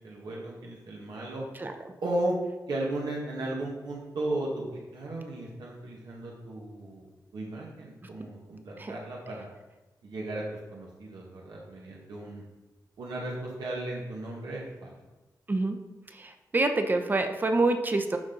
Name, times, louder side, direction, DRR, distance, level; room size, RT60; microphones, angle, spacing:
voice 1, 0.0-1.4 2.0-2.4 2.7-7.0 7.3-9.5 10.0-10.4 10.7-12.4 13.0-15.0, right 1 dB, 85° right, -3 dB, 1.6 m, -35 dB
voice 2, 16.1-18.2, right 2 dB, 25° right, 6 dB, 0.7 m, -27 dB
12.5 x 4.2 x 3.9 m, 1.1 s
wide cardioid pair, 145°, 7 cm